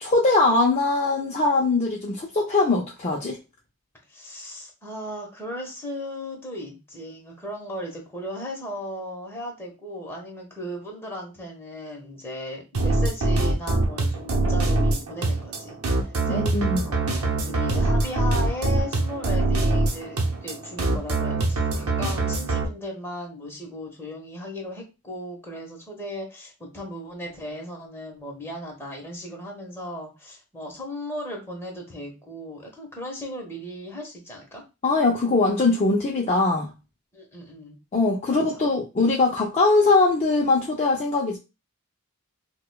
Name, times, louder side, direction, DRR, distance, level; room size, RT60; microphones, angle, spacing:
voice 1, 0.0-3.4 16.3-16.8 34.8-36.7 37.9-41.4, left 3 dB, 30° left, 0.4 m, -21 dB
voice 2, 4.1-15.8 16.0-34.6 37.1-37.8 38.3-38.6, left 1 dB, 10° left, 1.0 m, -36 dB
sound 1, 12.7-22.6, right 2 dB, 70° right, 0.7 m, -23 dB
4.9 x 2.2 x 2.2 m
head